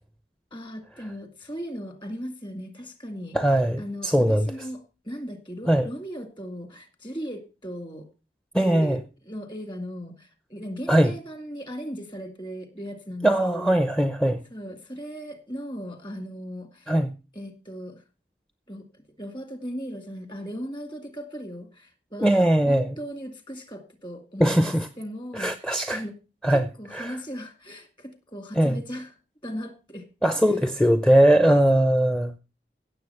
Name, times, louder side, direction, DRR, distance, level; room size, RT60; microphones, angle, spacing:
voice 1, 0.5-3.4 3.8-8.1 8.6-13.8 14.5-16.9 17.3-18.0 18.7-26.1 26.5-29.2 29.4-30.0 30.4-30.5, equal, 25° left, 2.1 m, -37 dB
voice 2, 3.3-4.5 5.7-5.9 8.5-9.0 10.9-11.1 13.2-14.4 16.9-17.1 22.2-23.0 24.4-24.9 25.3-26.0 26.4-26.7 26.9-27.1 28.6-28.8 30.2-32.4, right 1 dB, 5° left, 0.6 m, -20 dB
16.0 x 7.1 x 5.6 m
head